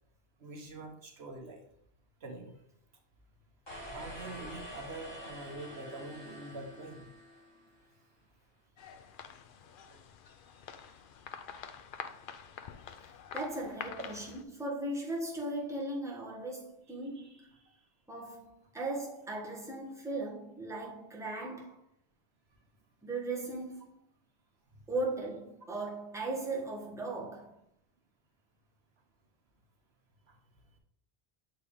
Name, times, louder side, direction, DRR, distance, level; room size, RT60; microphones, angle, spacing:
voice 1, 0.4-1.6 2.2-2.5 3.9-7.1 9.9-10.0 10.7-10.8 17.1-17.4 30.3-30.4, right 2 dB, 70° right, 1.3 m, -45 dB
sound 1, 3.7-7.9, equal, 25° left, 2.8 m, -47 dB
sound 2, 8.8-14.4, left 7 dB, 60° left, 0.7 m, -47 dB
voice 2, 13.3-17.5 18.1-21.8 23.0-23.9 24.9-27.6, right 2 dB, 5° right, 1.2 m, -37 dB
7.0 x 4.5 x 3.4 m
omnidirectional pair, 1.1 m